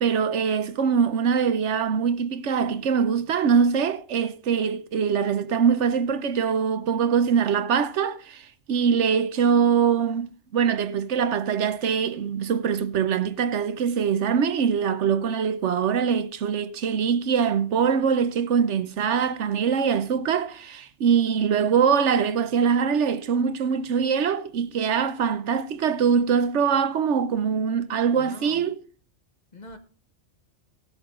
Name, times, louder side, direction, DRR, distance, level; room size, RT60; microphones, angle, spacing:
voice 1, 0.0-8.4 8.7-28.7, right 7 dB, 80° right, 1.1 m, -23 dB
voice 2, 28.1-28.7 29.5-29.8, left 3 dB, 40° left, 1.5 m, -43 dB
16.0 x 8.1 x 3.8 m
omnidirectional pair, 1.2 m